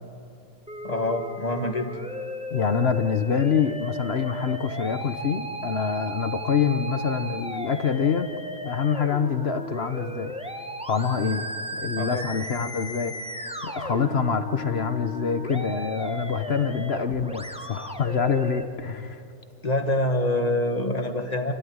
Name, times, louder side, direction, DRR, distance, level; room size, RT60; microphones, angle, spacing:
Musical instrument, 0.7-18.6, equal, 5° right, 0.9 m, -36 dB
voice 1, 0.8-2.0 12.0-12.3 19.6-21.5, left 1 dB, 25° left, 5 dB, 1.5 m, -26 dB
voice 2, 2.5-8.3 8.6-10.3 10.9-11.5 11.7-13.1 13.6-19.2, left 6 dB, 45° left, 9 dB, 1.0 m, -26 dB
28.5 x 14.5 x 9.5 m, 2.6 s
omnidirectional pair, 1.8 m